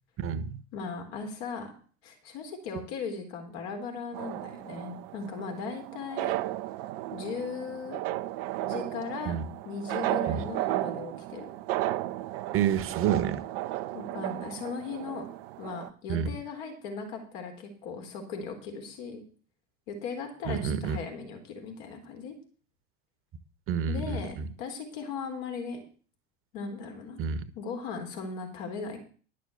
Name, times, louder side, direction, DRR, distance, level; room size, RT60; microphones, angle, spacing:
voice 1, 0.2-0.6 9.3-9.4 10.3-10.4 12.5-13.4 16.1-16.3 20.5-21.0 23.7-24.5 27.2-27.4, right 8 dB, 35° right, 13 dB, 1.3 m, -28 dB
voice 2, 0.7-1.7 2.0-6.4 7.1-8.0 8.6-9.4 9.6-11.5 13.9-15.3 15.6-19.2 19.9-22.4 23.9-25.8 26.5-27.2 27.6-29.0, left 5 dB, 60° left, 4 dB, 3.6 m, -38 dB
sound 1, 4.1-15.9, right 15 dB, 55° right, 0.8 m, -34 dB
11.5 x 6.7 x 6.9 m, 0.41 s
figure-of-eight pair, 75°, 35 cm